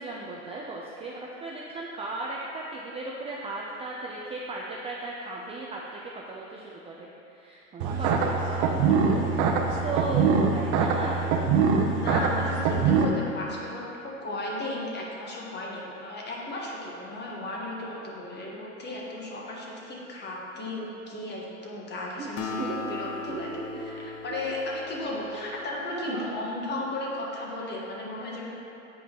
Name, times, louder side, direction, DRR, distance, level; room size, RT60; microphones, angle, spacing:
voice 1, 0.0-9.5 9.8-11.4 22.2-22.3 22.6-24.1 25.3-25.5 25.9-26.3, right 3 dB, 15° right, -3 dB, 0.4 m, -36 dB
sound 1, 7.8-13.1, right 5 dB, 55° right, 0.7 m, -23 dB
voice 2, 12.0-28.5, left 2 dB, 25° left, -3 dB, 1.3 m, -35 dB
Acoustic guitar, 22.4-26.1, left 3 dB, 85° left, 0.8 m, -38 dB
8.0 x 4.9 x 2.9 m, 2.8 s
hypercardioid pair, 95°, 38 cm